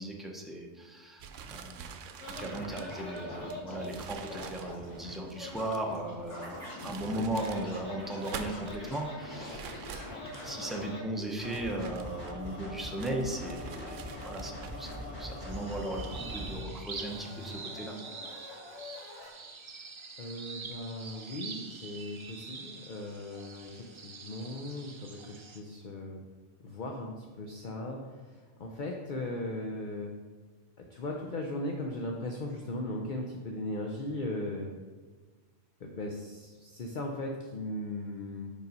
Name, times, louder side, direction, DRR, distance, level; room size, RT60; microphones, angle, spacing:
voice 1, 0.0-1.9 2.4-18.0, right 1 dB, ahead, 1 dB, 0.6 m, -37 dB
sound 1, 1.2-6.0 6.6-7.7 8.1-8.8 9.5-10.7 11.3-12.6 13.0-15.0, right 7 dB, 85° right, 0.9 m, -46 dB
Scratching (performance technique), 2.2-11.0 11.4-16.6 16.9-19.3, left 1 dB, 90° left, 2.6 m, -42 dB
sound 2, 15.4-25.6, right 4 dB, 45° right, 0.4 m, -46 dB
voice 2, 20.2-26.2 26.6-30.1 30.9-34.7 35.8-38.5, left 1 dB, 50° left, 1 dB, 0.7 m, -38 dB
5.3 x 4.9 x 5.3 m, 1.4 s
omnidirectional pair, 1.2 m